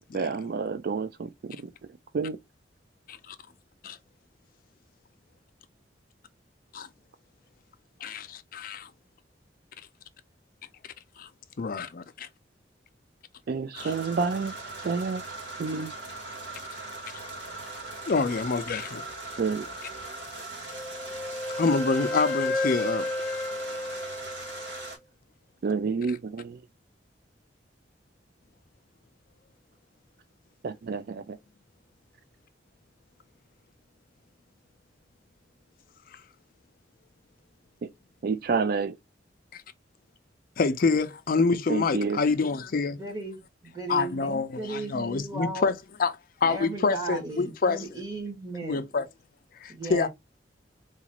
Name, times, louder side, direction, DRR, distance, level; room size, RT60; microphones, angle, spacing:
voice 1, 0.1-1.7 2.1-2.4 13.5-14.5 14.8-15.2 15.6-15.9 19.4-19.6 25.6-26.6 30.6-31.4 37.8-37.9 38.2-38.9 41.7-42.2, right 5 dB, 55° right, 0.3 m, -29 dB
voice 2, 8.0-8.9 11.2-11.3 11.6-12.3 13.7-14.0 18.1-19.0 21.6-23.1 26.1-26.2 36.1-36.2 39.5-39.6 40.6-43.0 43.9-45.7 46.0-46.1 46.4-47.9 48.6-49.1 49.5-50.1, left 4 dB, 50° left, 0.4 m, -27 dB
sound 1, 13.7-25.0, right 2 dB, 75° right, 1.7 m, -40 dB
Wind instrument woodwind instrument, 20.7-24.9, left 2 dB, ahead, 0.6 m, -32 dB
voice 3, 42.9-43.4 43.6-45.7 46.5-48.9 49.7-50.1, right 2 dB, 20° right, 1.3 m, -35 dB
4.0 x 2.5 x 2.9 m
head